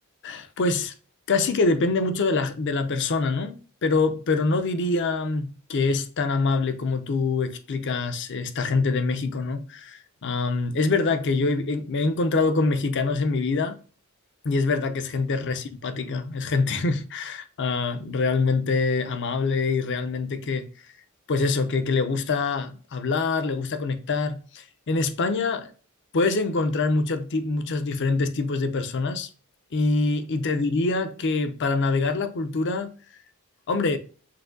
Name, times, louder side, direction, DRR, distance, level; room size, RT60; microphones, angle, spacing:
voice 1, 0.2-0.9 1.3-13.8 14.4-20.7 21.3-25.7 26.1-29.3 29.7-32.9 33.7-34.0, left 3 dB, 55° left, 0.5 m, -25 dB
5.9 x 2.7 x 2.6 m
head